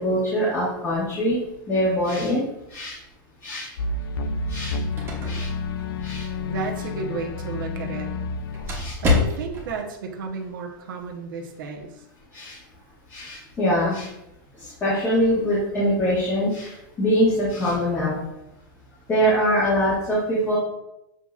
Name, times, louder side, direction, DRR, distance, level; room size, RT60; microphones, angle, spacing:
voice 1, 0.0-1.4 1.7-2.4 2.7-3.0 3.4-3.7 4.5-4.8 5.2-5.5 6.0-6.3 8.7-9.0 12.3-12.6 13.1-14.1 14.5-18.2 19.1-20.6, equal, 20° left, -9 dB, 1.5 m, -23 dB
sound 1, 3.8-9.5, left 3 dB, 85° left, 0.4 m, -30 dB
sound 2, 4.5-9.8, left 3 dB, 20° right, 1.1 m, -29 dB
voice 2, 6.4-8.1 9.0-11.9, right 5 dB, 75° right, 2 dB, 0.8 m, -32 dB
7.3 x 2.9 x 2.4 m, 0.86 s
supercardioid pair, 145°, 11 cm